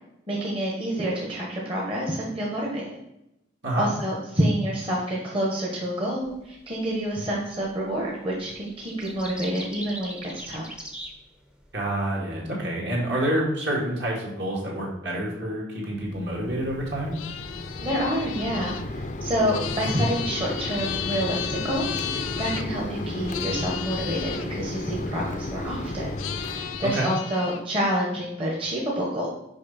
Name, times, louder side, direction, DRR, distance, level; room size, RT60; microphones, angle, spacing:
voice 1, 0.3-3.0 3.8-10.6 17.8-29.3, equal, 30° right, -3 dB, 1.2 m, -28 dB
sound 1, 6.2-6.5 7.6-8.0 8.3-11.9, right 1 dB, 5° right, 0.7 m, -40 dB
voice 2, 11.7-17.2 26.9-27.1, right 1 dB, 60° right, -3 dB, 2.1 m, -28 dB
Mechanisms, 16.0-27.0, left 2 dB, 40° left, 0.5 m, -33 dB
sound 2, 17.1-22.6 23.3-24.5 26.2-27.6, left 11 dB, 90° left, 0.4 m, -34 dB
6.3 x 5.3 x 4.2 m, 0.85 s
head